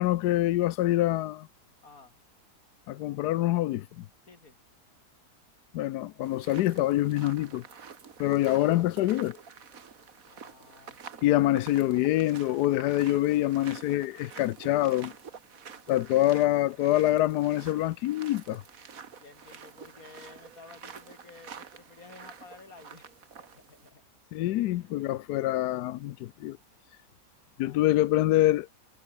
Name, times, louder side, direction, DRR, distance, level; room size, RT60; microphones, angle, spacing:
voice 1, 0.0-1.5 2.9-4.1 5.7-7.6 8.2-9.4 11.2-15.1 15.9-18.6 24.3-26.6 27.6-28.7, left 15 dB, 80° left, 1.1 m, -25 dB
voice 2, 1.8-2.2 4.3-4.6 10.3-11.3 19.2-24.0 24.7-25.3 27.5-27.8, left 4 dB, 55° left, 3.2 m, -53 dB
sound 1, 6.2-23.9, right 6 dB, 55° right, 2.0 m, -48 dB
omnidirectional pair, 1.8 m